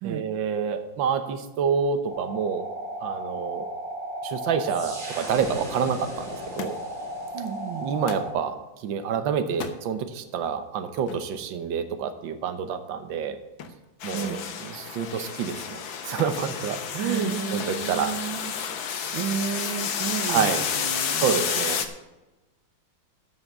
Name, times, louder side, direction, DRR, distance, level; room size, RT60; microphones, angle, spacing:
voice 1, 0.0-2.7 3.0-3.7 4.2-6.7 7.8-8.6 8.8-13.4 14.0-15.8 16.0-18.1 20.3-20.6 21.2-21.8, right 7 dB, 70° right, 9 dB, 1.6 m, -28 dB
sound 1, 2.1-8.3, right 1 dB, 35° right, 2.7 m, -35 dB
Thump thud, 6.6-7.1 8.1-8.4 9.5-9.8 11.1-11.3 13.6-13.9 14.3-14.8 16.2-16.5 17.6-17.9 18.8-19.3 20.3-20.4, left 6 dB, 80° left, 1.8 m, -39 dB
voice 2, 7.3-7.9 14.1-14.5 17.0-18.5 19.1-21.4, right 7 dB, 90° right, 9 dB, 1.6 m, -32 dB
sound 2, 14.0-21.9, left 7 dB, 60° left, 1.3 m, -30 dB
13.5 x 5.7 x 6.8 m, 1.1 s
omnidirectional pair, 2.2 m